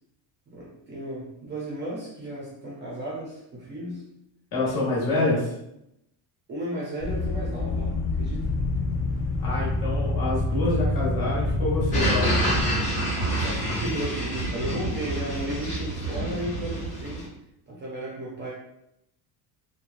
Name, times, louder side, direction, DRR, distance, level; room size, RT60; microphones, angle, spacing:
voice 1, 0.5-4.0 6.5-8.5 13.3-17.3 17.7-18.5, right 1 dB, 25° right, -6 dB, 0.5 m, -34 dB
voice 2, 4.5-5.5 9.4-12.3, left 2 dB, 55° left, -6 dB, 1.3 m, -26 dB
sound 1, 7.0-12.7, left 2 dB, 90° left, 0.8 m, -27 dB
sound 2, 11.9-17.3, right 1 dB, 15° left, 0.7 m, -27 dB
2.9 x 2.2 x 2.5 m, 0.82 s
cardioid pair, 180°, 43 cm